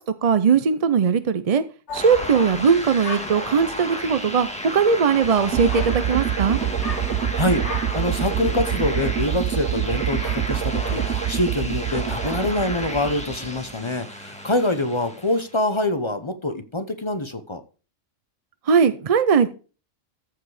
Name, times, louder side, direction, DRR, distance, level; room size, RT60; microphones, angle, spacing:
voice 1, 0.2-1.6 1.9-6.6 18.7-19.5, right 6 dB, 50° right, 12 dB, 0.4 m, -19 dB
sound 1, 1.9-13.2, left 4 dB, 60° left, 1.9 m, -40 dB
sound 2, 1.9-15.6, equal, 5° left, 1.6 m, -33 dB
sound 3, 5.5-13.7, right 11 dB, 70° right, 1.0 m, -26 dB
voice 2, 7.9-17.6, left 2 dB, 25° left, 9 dB, 0.7 m, -25 dB
14.0 x 4.8 x 4.9 m, 0.35 s
omnidirectional pair, 1.3 m